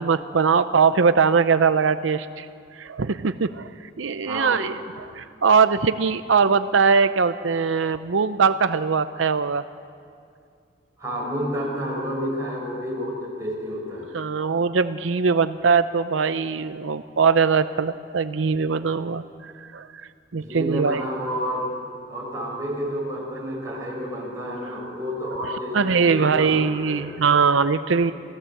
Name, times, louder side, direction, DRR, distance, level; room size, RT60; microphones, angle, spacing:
voice 1, 0.0-2.5 2.8-3.7 4.0-9.6 14.1-19.9 20.3-21.0 25.7-28.1, right 5 dB, 90° right, 12 dB, 0.6 m, -21 dB
voice 2, 4.2-4.7 11.0-14.1 20.3-21.7 22.1-27.3, equal, 15° right, -3 dB, 6.3 m, -30 dB
29.0 x 17.5 x 7.8 m, 2.3 s
head